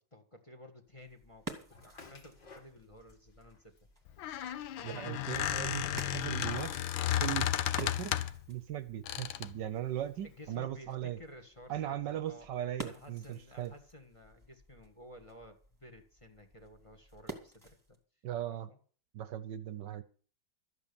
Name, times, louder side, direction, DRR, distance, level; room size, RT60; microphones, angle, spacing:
voice 1, 0.0-3.7 4.8-5.3 10.2-12.5 12.8-18.0 18.5-18.8, left 1 dB, 15° left, 1.5 m, -54 dB
sound 1, 0.9-18.0, right 1 dB, 10° right, 1.8 m, -51 dB
sound 2, 1.7-3.1 3.4-4.1 4.8-7.2, left 4 dB, 70° left, 3.0 m, -52 dB
Squeak, 4.1-8.4 9.1-9.6, left 12 dB, 90° left, 1.6 m, -33 dB
voice 2, 4.8-6.8 7.2-7.5 7.8-8.2 8.5-11.2 11.7-13.7 18.2-18.7 19.1-20.0, right 11 dB, 70° right, 1.4 m, -38 dB
13.5 x 8.4 x 6.9 m
omnidirectional pair, 2.1 m